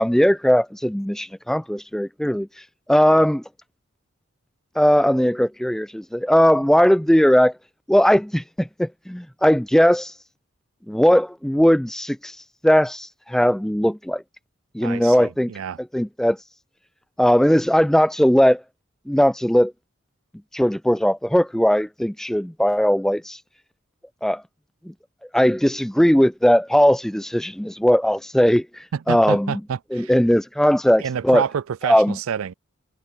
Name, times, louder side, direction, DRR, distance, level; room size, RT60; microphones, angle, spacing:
voice 1, 0.0-2.5 2.9-3.4 4.8-7.5 7.9-10.1 10.9-12.4 12.6-14.2 14.7-15.5 15.9-16.4 17.2-18.6 19.1-19.7 20.5-23.4 24.2-24.4 24.9-25.0 25.3-29.6 29.9-31.4 31.8-32.2, equal, ahead, 0.3 m, -18 dB
voice 2, 14.8-15.8 28.9-30.1 31.0-32.5, right 7 dB, 85° right, 0.4 m, -28 dB
head